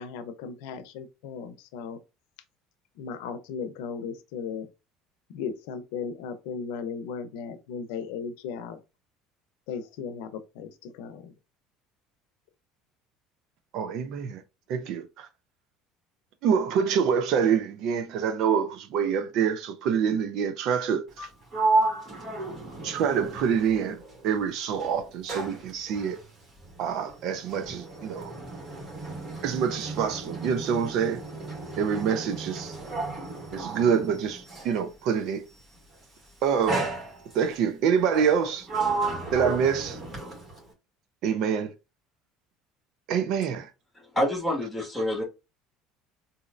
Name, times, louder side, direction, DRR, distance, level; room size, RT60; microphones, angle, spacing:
voice 1, 0.0-2.0 3.0-4.7 5.3-8.8 9.7-11.3, left 6 dB, 80° left, 0.7 m, -36 dB
voice 2, 13.7-14.4 14.7-15.3 16.4-21.3 22.8-26.2 26.8-28.3 29.4-31.2 31.8-32.8 33.5-35.5 36.4-36.9 37.3-38.7 39.3-40.0 41.2-41.7 43.1-43.7, right 7 dB, 65° right, 0.7 m, -26 dB
Sliding door, 21.1-24.4 24.7-34.8 35.7-36.0 36.7-37.6 38.2-40.7, right 3 dB, 35° right, 2.3 m, -33 dB
voice 3, 43.9-45.2, left 1 dB, 5° left, 1.7 m, -27 dB
4.2 x 2.8 x 2.5 m
supercardioid pair, 110°, 0 cm